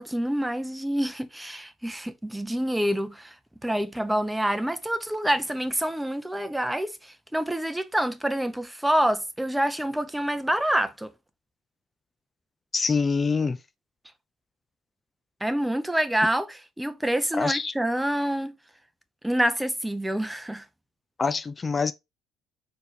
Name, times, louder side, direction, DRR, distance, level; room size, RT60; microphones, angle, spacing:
voice 1, 0.0-3.3 3.6-6.9 7.3-11.1 15.4-18.5 19.2-20.6, right 1 dB, 5° right, 0.8 m, -27 dB
voice 2, 12.7-13.6 17.3-17.7 21.2-21.9, left 4 dB, 30° left, 0.5 m, -25 dB
4.7 x 4.4 x 5.1 m
figure-of-eight pair, 55°, 0 cm